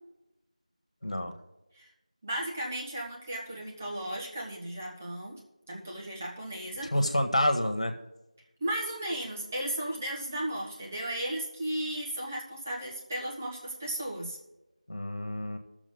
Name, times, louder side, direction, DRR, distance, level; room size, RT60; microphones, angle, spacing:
voice 1, 1.0-1.3 6.9-7.9 14.9-15.6, left 1 dB, 60° left, 6 dB, 1.6 m, -28 dB
voice 2, 2.2-5.4 5.7-6.9 8.6-14.4, right 1 dB, 20° right, -3 dB, 1.4 m, -35 dB
17.0 x 7.2 x 3.9 m, 0.99 s
figure-of-eight pair, 175°, 4 cm